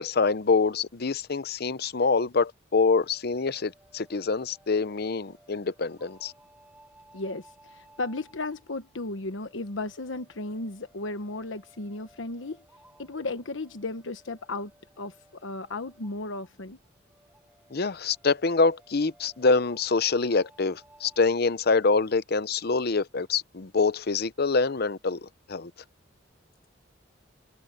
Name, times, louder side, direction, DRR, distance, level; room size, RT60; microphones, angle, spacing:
voice 1, 0.0-6.3 17.7-25.7, left 4 dB, 55° left, 0.7 m, -25 dB
sound 1, 3.0-21.2, right 1 dB, 10° right, 5.3 m, -59 dB
voice 2, 7.1-12.6 13.0-14.7 15.0-15.1 15.4-16.8, left 2 dB, 85° left, 1.1 m, -35 dB
head